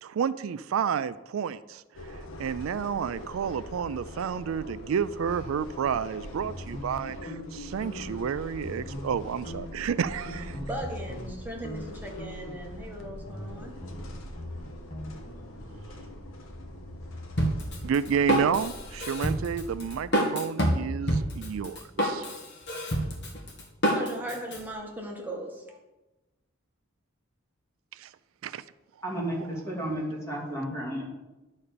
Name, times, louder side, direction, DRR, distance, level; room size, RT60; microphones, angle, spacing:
voice 1, 0.0-10.6 17.8-22.3 27.9-28.1 28.4-28.6, right 7 dB, 80° right, 15 dB, 0.4 m, -30 dB
sound 1, 1.9-20.0, left 1 dB, 80° left, 1.3 m, -43 dB
sound 2, 6.4-8.3 8.6-9.2 9.4-11.3 11.6-11.9 12.2-15.2, equal, 35° left, 1.4 m, -41 dB
voice 2, 10.4-13.8 23.9-25.8, right 1 dB, 10° right, -1 dB, 1.7 m, -38 dB
Drum kit, 17.4-24.6, equal, 60° left, 1.9 m, -28 dB
voice 3, 29.0-31.1, right 1 dB, 15° left, -3 dB, 2.5 m, -32 dB
11.0 x 4.2 x 6.7 m, 1.0 s
head